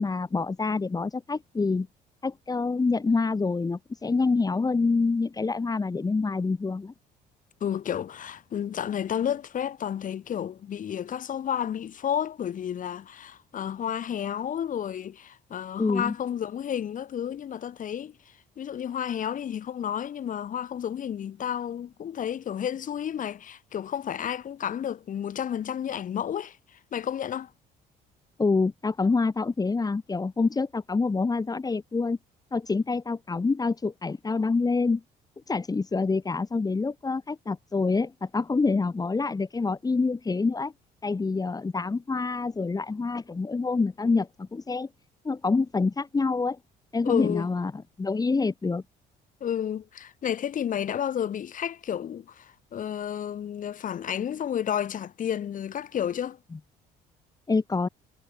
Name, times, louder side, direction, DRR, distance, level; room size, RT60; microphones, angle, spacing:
voice 1, 0.0-1.9 2.2-6.9 15.8-16.1 28.4-32.2 32.5-35.0 35.5-40.7 41.0-44.9 45.2-46.6 46.9-48.8 57.5-57.9, left 4 dB, 20° left, 7.2 m, -26 dB
voice 2, 7.6-18.2 18.6-27.5 47.0-47.5 49.4-56.4, left 9 dB, 50° left, 7.8 m, -31 dB
cardioid pair, 110°, 17 cm